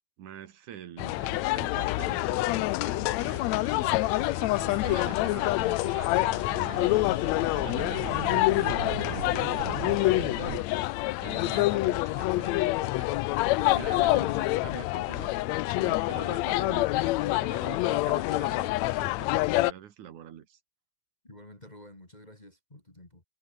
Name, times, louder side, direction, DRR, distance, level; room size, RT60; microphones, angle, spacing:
voice 1, 0.2-7.0 7.4-10.9 11.2-13.1 13.6-15.4 15.8-20.6, right 10 dB, 75° right, 3.1 m, -45 dB
sound 1, 1.0-19.7, left 19 dB, 80° left, 1.7 m, -27 dB
sound 2, 3.2-10.6, right 14 dB, 90° right, 2.6 m, -41 dB
voice 2, 21.2-23.2, left 1 dB, 15° left, 2.6 m, -49 dB
omnidirectional pair, 3.5 m